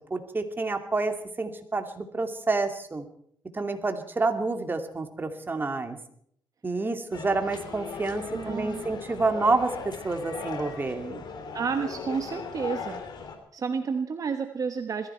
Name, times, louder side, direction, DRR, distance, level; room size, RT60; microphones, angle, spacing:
voice 1, 0.1-3.1 3.5-6.0 6.6-11.2, right 3 dB, 25° right, 6 dB, 2.5 m, -28 dB
sound 1, 7.1-13.4, left 5 dB, 60° left, 3.1 m, -38 dB
voice 2, 8.3-8.8 11.5-13.0 13.5-15.1, right 5 dB, 45° right, 7 dB, 1.3 m, -30 dB
21.5 x 14.5 x 4.5 m, 0.66 s
cardioid pair, 80°, 8 cm